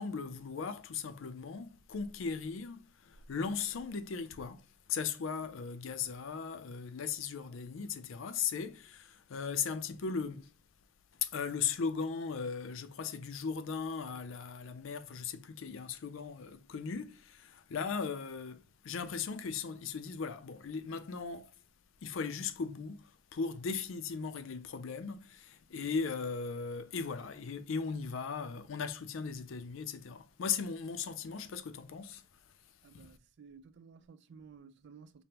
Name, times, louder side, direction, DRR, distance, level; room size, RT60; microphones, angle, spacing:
voice 1, 0.0-10.5 11.2-21.5 22.0-32.2 32.9-33.1, left 5 dB, 65° left, 0.4 m, -38 dB
voice 2, 32.8-35.2, right 5 dB, 55° right, 0.4 m, -55 dB
5.0 x 2.1 x 2.9 m
head